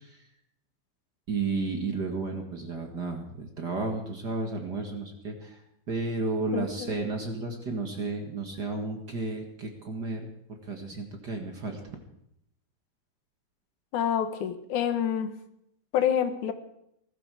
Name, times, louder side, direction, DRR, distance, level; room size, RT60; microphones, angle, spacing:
voice 1, 1.3-5.6 5.9-10.2 10.7-12.0, right 3 dB, 40° right, 3 dB, 2.0 m, -32 dB
voice 2, 6.5-6.9 13.9-15.3 15.9-16.5, left 9 dB, 80° left, 9 dB, 2.7 m, -27 dB
20.0 x 13.5 x 4.8 m, 0.77 s
omnidirectional pair, 3.4 m